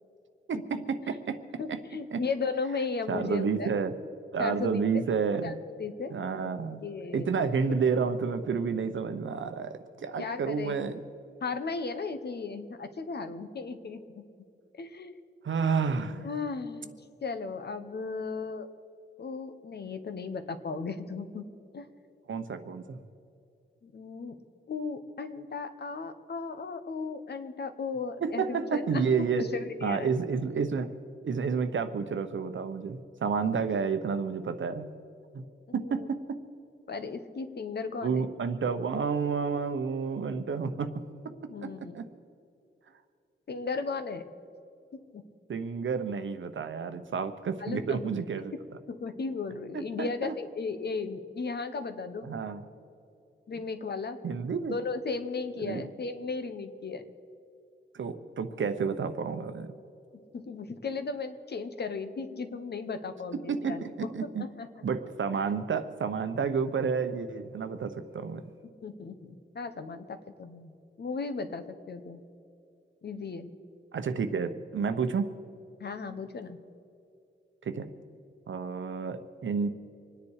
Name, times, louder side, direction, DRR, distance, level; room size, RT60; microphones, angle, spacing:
voice 1, 0.5-1.4 1.7-1.8 2.1-2.2 3.1-4.0 4.3-5.6 6.1-6.8 7.1-11.0 15.4-16.3 22.3-23.0 28.2-29.4 29.8-30.9 31.2-34.9 35.3-35.5 35.7-36.4 38.0-40.9 41.2-41.3 41.6-42.1 45.5-48.5 49.7-50.4 52.2-52.6 54.2-54.7 55.6-55.9 57.9-59.7 63.3-64.5 64.8-68.4 73.9-75.3 77.6-77.9 78.5-79.7, right 5 dB, 70° right, 9 dB, 1.0 m, -30 dB
voice 2, 1.6-3.7 4.4-5.0 5.4-6.5 6.8-7.4 7.7-7.8 10.2-10.7 11.4-14.2 14.8-15.1 16.2-16.9 17.2-18.7 19.2-21.4 21.7-21.9 23.8-24.4 24.7-29.0 29.4-30.1 35.8-36.1 36.9-38.2 41.5-42.0 43.5-44.3 44.9-45.2 47.6-48.1 48.9-52.3 53.5-54.2 54.7-57.0 60.3-63.8 64.4-64.7 68.8-72.2 73.0-73.5 75.8-76.6, left 4 dB, 55° left, 9 dB, 1.1 m, -36 dB
26.0 x 10.0 x 4.9 m, 2.6 s
wide cardioid pair, 165°, 21 cm